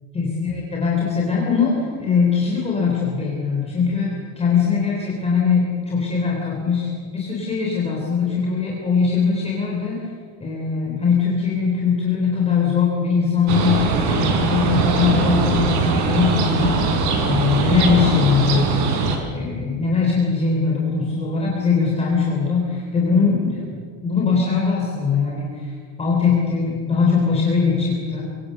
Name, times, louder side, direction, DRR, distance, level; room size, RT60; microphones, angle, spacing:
voice 1, 0.1-10.0 10.4-16.8 17.2-18.7 19.3-23.8 24.0-28.2, left 5 dB, 15° left, -3 dB, 3.7 m, -21 dB
sound 1, 13.5-19.2, right 4 dB, 60° right, 4.9 m, -21 dB
26.0 x 24.0 x 6.9 m, 2.1 s
cardioid pair, 180°, 43 cm